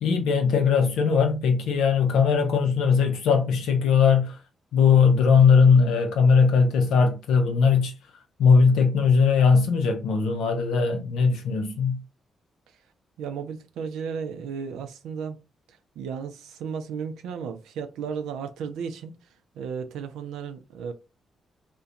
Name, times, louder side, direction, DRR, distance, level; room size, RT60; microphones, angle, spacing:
voice 1, 0.0-4.4 4.7-7.9 8.4-12.0, left 5 dB, 75° left, 0.5 m, -19 dB
voice 2, 13.2-15.4 15.7-19.1 19.5-20.9, right 6 dB, 75° right, 0.4 m, -34 dB
2.4 x 2.1 x 2.7 m
hypercardioid pair, 45°, 0 cm